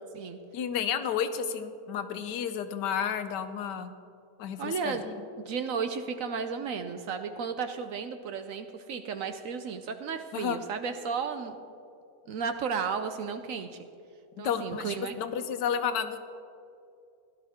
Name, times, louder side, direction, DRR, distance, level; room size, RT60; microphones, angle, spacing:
voice 1, 0.5-3.9 4.4-5.1 10.3-10.6 14.4-16.2, left 7 dB, 85° left, 9 dB, 1.4 m, -31 dB
voice 2, 4.6-5.1 5.4-11.6 12.3-13.9 14.4-15.1, right 6 dB, 65° right, 8 dB, 0.9 m, -34 dB
16.5 x 11.5 x 3.6 m, 2.6 s
omnidirectional pair, 1.8 m